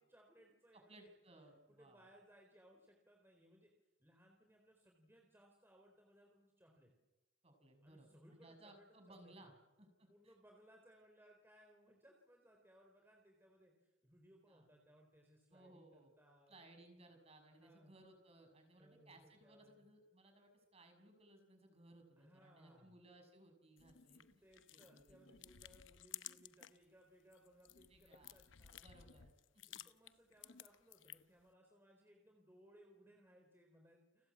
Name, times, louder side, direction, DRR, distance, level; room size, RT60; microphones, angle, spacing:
voice 1, 0.0-1.1 1.8-3.7 4.0-6.9 7.8-9.5 10.1-16.6 17.5-18.0 18.5-19.9 22.2-23.0 24.4-28.9 29.7-34.3, equal, 10° right, 1 dB, 4.0 m, -66 dB
voice 2, 0.7-2.1 7.4-10.3 14.5-14.6 15.5-16.1 16.5-24.4 24.7-25.5 27.9-28.4 28.8-29.6, right 1 dB, 30° right, 5 dB, 6.6 m, -63 dB
sound 1, 23.8-26.8 27.2-31.4, left 12 dB, 80° left, 0.8 m, -56 dB
30.0 x 20.5 x 8.6 m, 1.0 s
head